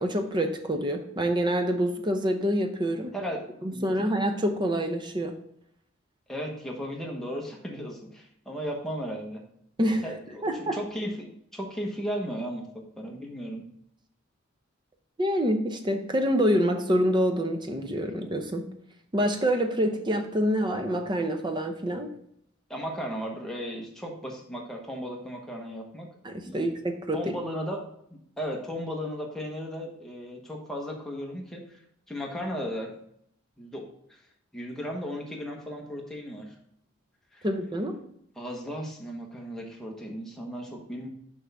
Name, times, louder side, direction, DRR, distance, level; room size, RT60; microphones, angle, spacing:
voice 1, 0.0-3.1 3.6-5.3 9.8-10.0 10.4-10.8 15.2-18.6 19.1-22.1 26.2-27.3 37.4-37.9, equal, 20° right, 6 dB, 0.6 m, -26 dB
voice 2, 3.1-3.4 3.7-3.9 6.3-9.4 10.0-12.6 13.0-13.7 22.7-26.1 26.5-26.7 27.1-27.8 28.1-31.8 32.1-32.9 33.6-34.2 34.5-36.6 37.3-37.5 38.4-41.1, equal, ahead, -1 dB, 1.1 m, -35 dB
6.2 x 5.6 x 3.4 m, 0.71 s
head